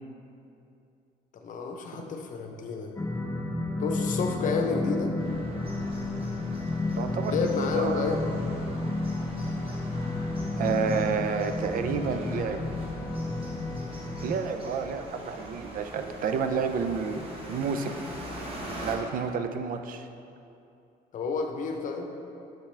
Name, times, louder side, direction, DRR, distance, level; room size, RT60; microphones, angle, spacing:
voice 1, 1.3-2.9 3.8-5.1 7.3-8.2 21.1-22.1, left 4 dB, 50° left, 3 dB, 0.8 m, -30 dB
sound 1, 3.0-14.4, left 2 dB, 15° left, 0.6 m, -31 dB
sound 2, 5.2-19.0, right 1 dB, 35° right, 1.2 m, -42 dB
voice 2, 6.9-8.4 10.6-12.6 14.2-18.0 18.8-20.1, right 6 dB, 55° right, 8 dB, 0.5 m, -30 dB
7.4 x 5.7 x 3.3 m, 2.7 s
cardioid pair, 110°, 17 cm